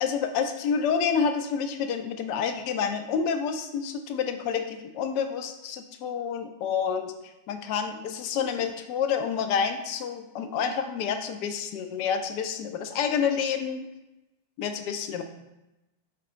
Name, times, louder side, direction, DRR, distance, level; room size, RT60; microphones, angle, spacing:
voice 1, 0.0-7.1 7.5-13.8 14.6-15.2, left 6 dB, 45° left, 7 dB, 0.3 m, -28 dB
4.8 x 2.3 x 3.7 m, 0.95 s
figure-of-eight pair, 90°, 0 cm